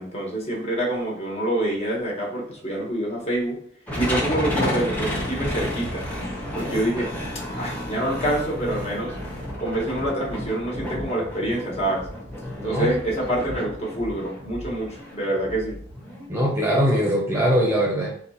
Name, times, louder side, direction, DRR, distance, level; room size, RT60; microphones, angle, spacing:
voice 1, 0.0-3.6 3.9-6.0 6.5-7.1 7.5-9.1 9.6-12.1 12.6-15.8, right 1 dB, 35° left, -3 dB, 1.4 m, -26 dB
sound 1, 3.9-16.3, equal, 10° left, 1.1 m, -31 dB
voice 2, 12.6-12.9 16.3-18.2, equal, 15° right, -3 dB, 0.9 m, -21 dB
4.2 x 2.5 x 4.2 m, 0.63 s
head